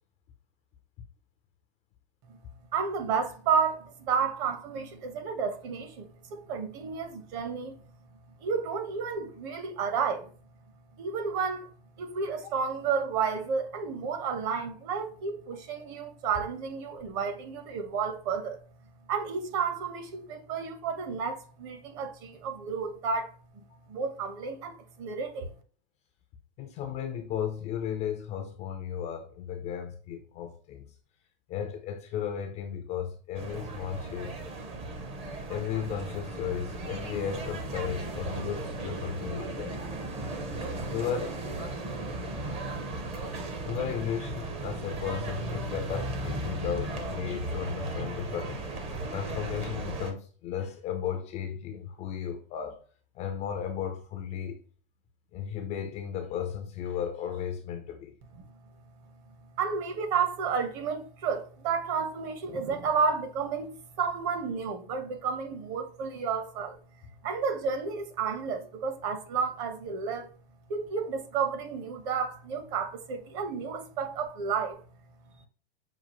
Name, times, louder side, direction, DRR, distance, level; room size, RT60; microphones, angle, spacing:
voice 1, 2.7-7.8 8.4-10.3 11.0-11.7 12.0-18.6 19.1-23.6 23.9-25.5 58.4-58.5 59.3-66.8 67.2-70.3 70.7-74.8, right 6 dB, 40° right, 0.9 m, -31 dB
voice 2, 26.6-30.8 31.5-34.3 35.5-39.8 40.9-41.4 43.7-48.6 49.1-52.8 53.2-54.6 55.3-58.1, left 8 dB, 25° left, 0.4 m, -35 dB
sound 1, 33.4-50.1, right 2 dB, 20° right, 0.6 m, -36 dB
5.9 x 2.4 x 2.9 m
supercardioid pair, 145°, 29 cm